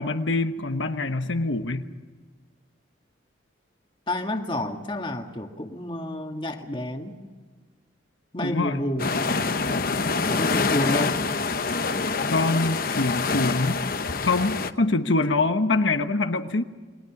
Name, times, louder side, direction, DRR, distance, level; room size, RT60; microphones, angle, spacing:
voice 1, 0.0-1.9 8.4-8.8 12.3-13.8 14.3-16.6, left 3 dB, 80° left, 7 dB, 1.2 m, -24 dB
voice 2, 4.1-7.2 8.3-9.1 10.3-11.2, left 1 dB, 25° left, 4 dB, 1.9 m, -29 dB
sound 1, 9.0-14.7, left 4 dB, 50° left, 0.9 m, -26 dB
28.5 x 22.0 x 6.0 m, 1.4 s
head